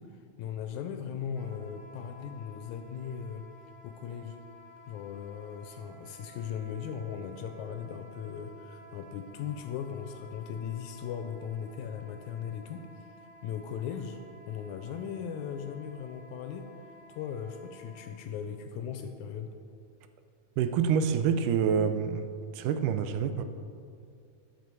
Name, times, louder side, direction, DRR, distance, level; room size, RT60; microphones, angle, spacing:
voice 1, 0.0-3.5 3.8-4.4 4.9-13.1 13.4-14.2 14.5-16.7 17.1-19.5, left 8 dB, 80° left, 6 dB, 1.8 m, -38 dB
Wind instrument woodwind instrument, 1.3-18.1, left 1 dB, 60° right, 1.6 m, -54 dB
voice 2, 20.6-22.2 22.5-23.4, right 7 dB, 85° right, 9 dB, 2.1 m, -27 dB
10.5 x 6.8 x 4.7 m, 2.3 s
omnidirectional pair, 3.7 m